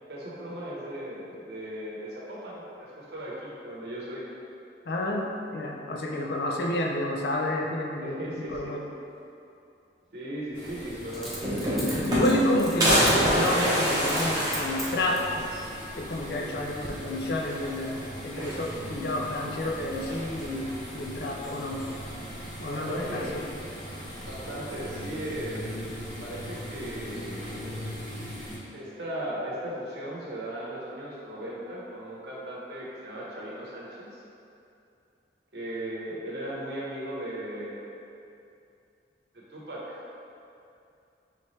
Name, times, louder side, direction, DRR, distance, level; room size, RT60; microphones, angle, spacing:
voice 1, 0.1-4.2 8.0-8.7 10.1-12.0 22.6-23.4 24.2-25.7 26.2-28.0 28.7-34.2 35.5-37.9 39.3-40.0, right 1 dB, 70° right, -6 dB, 0.9 m, -37 dB
voice 2, 4.9-8.8 12.1-15.5 16.0-21.9 22.6-23.4, left 1 dB, 60° left, 0 dB, 0.4 m, -29 dB
Coin (dropping), 8.5-8.6 11.1-13.1 13.4-13.6 14.0-14.3 14.5-15.3 16.0-16.5 16.8-16.9, equal, ahead, 0.5 m, -39 dB
sound 1, 10.5-28.6, equal, 80° left, 1.2 m, -40 dB
sound 2, 10.8-10.9 11.2-12.5 12.8-15.4 15.8-15.9 16.2-16.3 17.4-17.9 18.3-19.0 20.0-20.6, equal, 20° right, 1.0 m, -26 dB
4.1 x 3.3 x 3.1 m, 2.6 s
head